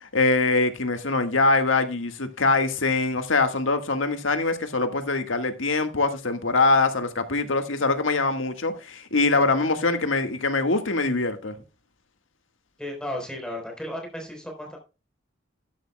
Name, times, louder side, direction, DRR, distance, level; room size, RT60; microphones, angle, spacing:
voice 1, 0.0-11.6, left 3 dB, 85° left, 1.7 m, -23 dB
voice 2, 12.8-14.8, left 1 dB, 5° left, 4.1 m, -34 dB
12.5 x 11.5 x 2.2 m
head